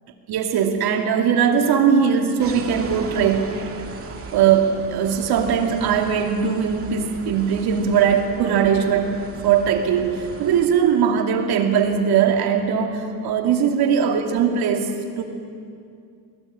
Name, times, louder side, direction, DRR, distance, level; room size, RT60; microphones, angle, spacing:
voice 1, 0.3-3.6 4.3-15.2, right 7 dB, 75° right, 4 dB, 2.7 m, -20 dB
sound 1, 2.4-10.7, right 4 dB, 35° right, 2.4 m, -37 dB
21.0 x 19.0 x 8.7 m, 2.4 s
cardioid pair, 110°, 38 cm